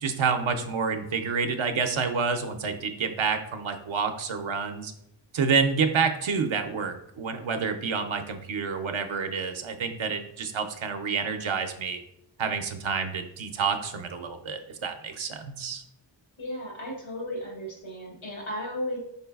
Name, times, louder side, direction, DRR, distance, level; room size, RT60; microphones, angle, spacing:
voice 1, 0.0-4.9 5.3-12.0 12.4-15.8, right 5 dB, 80° right, 6 dB, 0.5 m, -28 dB
voice 2, 16.4-19.0, left 1 dB, 80° left, -2 dB, 1.5 m, -34 dB
5.5 x 3.8 x 2.3 m, 0.76 s
wide cardioid pair, 80°, 47 cm